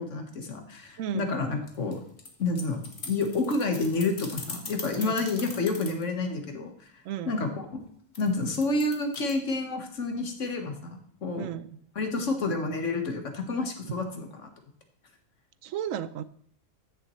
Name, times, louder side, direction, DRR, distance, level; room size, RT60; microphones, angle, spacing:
voice 1, 0.0-2.0 2.4-7.8 8.2-11.5 11.9-14.5, left 3 dB, 70° left, 4 dB, 1.7 m, -29 dB
voice 2, 1.0-1.3 5.0-5.2 7.0-7.3 11.4-11.8 15.6-16.2, right 10 dB, 85° right, 15 dB, 1.0 m, -34 dB
sound 1, 1.7-6.0 8.1-9.3, left 4 dB, 50° left, 1.7 m, -40 dB
14.0 x 6.9 x 3.1 m, 0.66 s
omnidirectional pair, 1.3 m